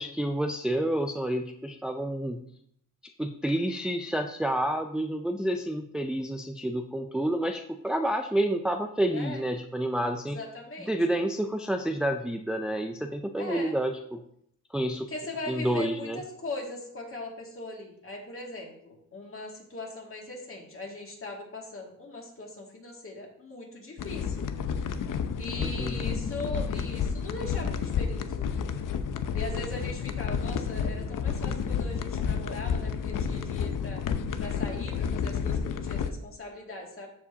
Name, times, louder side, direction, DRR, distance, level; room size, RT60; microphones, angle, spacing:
voice 1, 0.0-2.4 3.2-10.4 10.9-14.2 14.7-15.1 15.5-16.2 25.6-26.0, right 1 dB, 5° right, 4 dB, 0.4 m, -29 dB
voice 2, 9.1-9.4 10.3-10.9 13.4-13.8 15.1-24.5 25.4-28.9 29.3-34.0 34.4-37.1, left 2 dB, 40° left, -1 dB, 2.3 m, -40 dB
sound 1, 24.0-36.1, left 6 dB, 70° left, 0.7 m, -30 dB
14.0 x 4.9 x 2.8 m, 0.69 s
cardioid pair, 95°, 34 cm